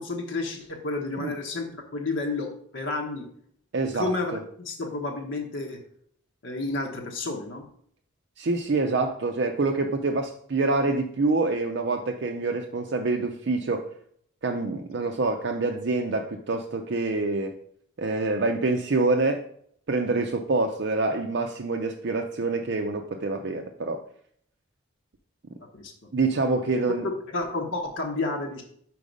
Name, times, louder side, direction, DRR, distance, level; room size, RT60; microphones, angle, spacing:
voice 1, 0.0-3.2 3.9-4.3 4.6-5.8 6.4-7.6 25.7-25.9 27.3-28.6, left 3 dB, 60° left, 1 dB, 1.0 m, -31 dB
voice 2, 3.7-4.4 8.4-13.9 14.4-17.6 18.0-19.4 19.9-24.0 26.1-27.1, right 3 dB, 55° right, 3 dB, 0.5 m, -26 dB
4.9 x 4.6 x 5.2 m, 0.63 s
head